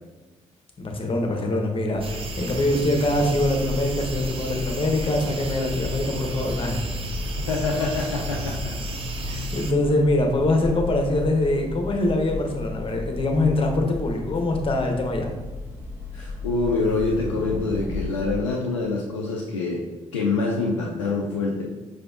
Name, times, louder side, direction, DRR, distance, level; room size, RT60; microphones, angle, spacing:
voice 1, 0.8-6.8 9.2-15.3, left 1 dB, 35° left, 2 dB, 0.9 m, -23 dB
sound 1, 2.0-9.7, right 3 dB, 35° right, 0.6 m, -34 dB
sound 2, 3.0-18.3, left 3 dB, 15° right, 1.0 m, -34 dB
voice 2, 7.4-8.5 16.1-19.8 20.1-21.6, left 3 dB, 85° left, -2 dB, 0.4 m, -25 dB
4.9 x 4.1 x 2.4 m, 1.2 s
figure-of-eight pair, 40°, 15 cm